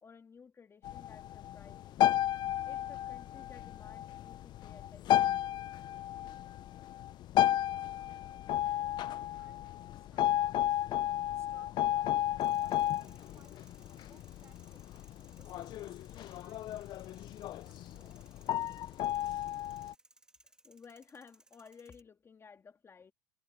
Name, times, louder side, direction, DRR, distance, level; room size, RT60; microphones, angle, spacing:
voice 1, 0.0-2.3 2.7-5.4 20.4-23.1, left 5 dB, 20° left, 2.3 m, -56 dB
sound 1, 0.8-19.9, left 12 dB, 40° left, 0.5 m, -33 dB
voice 2, 8.5-9.1 9.4-16.0 16.4-18.5, right 6 dB, 25° right, 7.4 m, -66 dB
sound 2, 12.4-22.0, right 1 dB, 5° right, 2.9 m, -63 dB
supercardioid pair, 105°, 12 cm